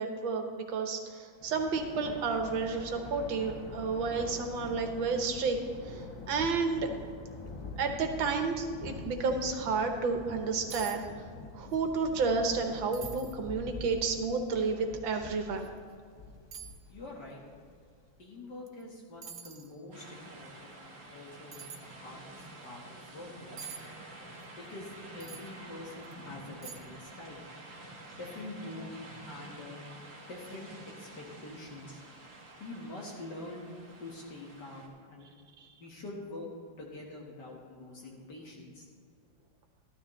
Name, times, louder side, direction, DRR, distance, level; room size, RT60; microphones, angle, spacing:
voice 1, 0.0-5.6 5.9-6.9 7.8-11.0 11.6-15.7 35.6-35.7, right 4 dB, 85° right, 4 dB, 1.9 m, -31 dB
Thunder, 1.3-18.0, left 2 dB, 20° left, 0.6 m, -45 dB
sound 1, 10.7-11.0 11.3-11.8 12.2-12.3 12.9-13.4 14.0-14.1 15.6-15.7 16.5-16.8 18.7-18.8 19.2-19.7 21.5-21.8 23.6-23.8 25.2-25.5 26.0-26.1 26.6-27.0 27.3-27.4, right 7 dB, 55° right, 0.9 m, -45 dB
voice 2, 16.9-17.4 18.2-22.3 22.6-23.6 24.6-27.7 28.2-29.0 29.3-29.8 30.3-30.7 31.0-32.0 32.6-33.7 34.0-35.3 35.8-36.5 36.8-38.8, left 2 dB, 60° left, -3 dB, 2.2 m, -45 dB
sound 2, 19.9-34.9, right 2 dB, 35° right, 1.7 m, -49 dB
13.5 x 12.5 x 3.2 m, 2.1 s
omnidirectional pair, 2.1 m